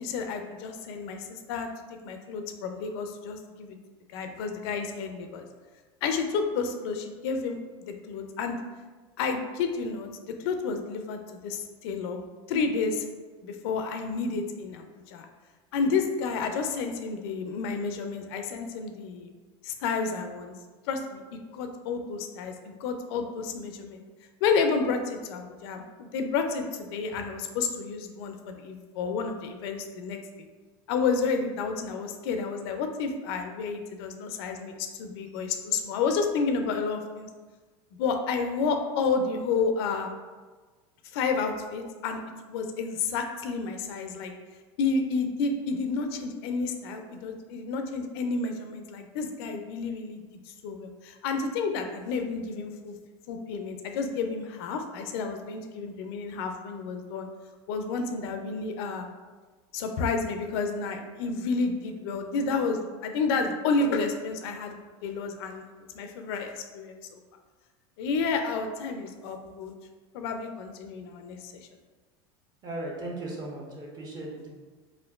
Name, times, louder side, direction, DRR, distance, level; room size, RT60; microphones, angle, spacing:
voice 1, 0.0-1.7 2.0-3.8 4.1-5.4 6.0-8.6 9.2-10.1 10.4-12.2 12.5-13.0 13.4-15.3 15.7-19.3 19.6-20.5 20.9-24.0 24.4-30.5 30.9-37.3 38.0-40.1 41.1-42.2 42.5-44.3 44.8-50.2 50.6-52.9 53.3-57.3 57.7-59.1 59.7-65.6 66.0-67.2 68.0-69.7 70.1-71.5, left 4 dB, 70° left, 5 dB, 0.4 m, -30 dB
voice 2, 72.6-74.5, right 2 dB, 30° right, -2 dB, 0.9 m, -37 dB
4.3 x 2.5 x 2.4 m, 1.3 s
supercardioid pair, 120°, 14 cm